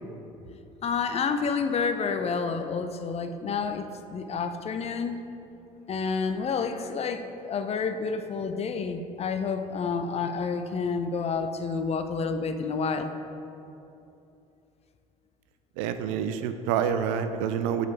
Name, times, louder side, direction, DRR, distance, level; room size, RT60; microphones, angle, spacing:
voice 1, 0.8-5.2 5.9-13.1, left 5 dB, 35° left, 8 dB, 0.5 m, -29 dB
voice 2, 15.8-17.9, right 8 dB, 70° right, 9 dB, 0.4 m, -27 dB
7.3 x 4.1 x 4.4 m, 2.8 s
hypercardioid pair, 60°, 18 cm